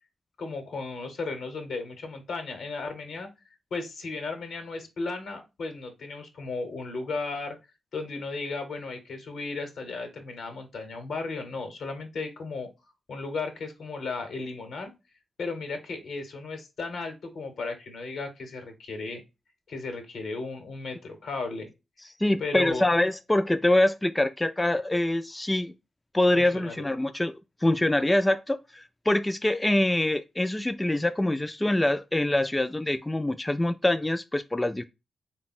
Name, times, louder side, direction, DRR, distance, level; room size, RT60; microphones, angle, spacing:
voice 1, 0.4-3.3 3.7-7.6 7.9-12.7 13.1-14.9 15.4-19.2 19.7-21.7 22.4-22.9 26.3-26.9, left 3 dB, 75° left, 0.9 m, -35 dB
voice 2, 22.2-25.7 26.1-27.3 27.6-34.9, left 1 dB, 20° left, 0.3 m, -25 dB
3.5 x 2.2 x 4.0 m
supercardioid pair, 40°, 0 cm